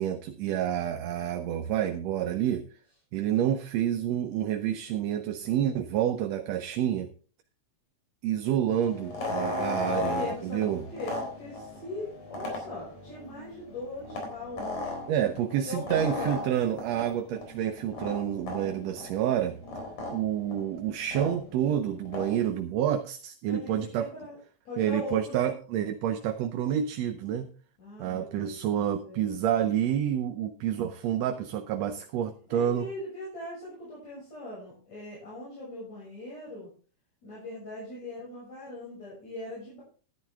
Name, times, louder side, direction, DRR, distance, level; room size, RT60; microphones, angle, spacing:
voice 1, 0.0-2.6 3.1-7.1 8.2-10.8 15.1-19.6 20.1-24.1 24.8-27.5 28.0-32.9, right 10 dB, 70° right, 7 dB, 1.8 m, -28 dB
sound 1, 8.8-22.5, left 2 dB, 80° left, 5.3 m, -37 dB
voice 2, 9.2-14.9 15.6-16.4 23.5-24.4 24.7-25.5 27.8-28.6 29.0-29.5 32.5-36.7 37.2-39.8, left 2 dB, 60° left, -6 dB, 7.5 m, -40 dB
13.5 x 11.0 x 3.5 m, 0.39 s
omnidirectional pair, 3.4 m